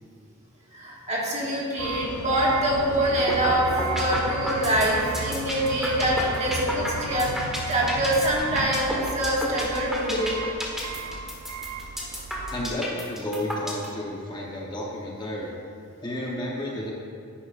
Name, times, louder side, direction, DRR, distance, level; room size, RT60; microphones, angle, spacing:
voice 1, 0.7-10.4, right 1 dB, 30° right, -4 dB, 1.7 m, -25 dB
sound 1, 1.8-12.7, right 4 dB, 90° right, 0.5 m, -34 dB
sound 2, 3.3-3.5 3.8-13.9, equal, ahead, 1.3 m, -31 dB
voice 2, 12.5-15.5 16.0-16.9, left 1 dB, 20° left, -3 dB, 0.9 m, -32 dB
10.0 x 10.0 x 2.5 m, 2.3 s
head